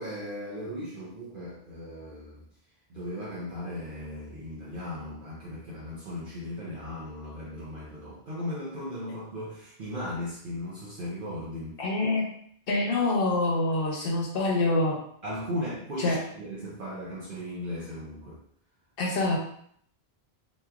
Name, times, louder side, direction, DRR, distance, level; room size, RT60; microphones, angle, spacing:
voice 1, 0.0-2.4 2.9-11.8 15.2-18.4, left 1 dB, 55° right, -7 dB, 0.8 m, -37 dB
voice 2, 11.8-12.2 12.7-15.0 16.0-16.2 19.0-19.4, left 2 dB, 65° left, -1 dB, 0.8 m, -25 dB
3.0 x 2.7 x 2.3 m, 0.65 s
omnidirectional pair, 1.1 m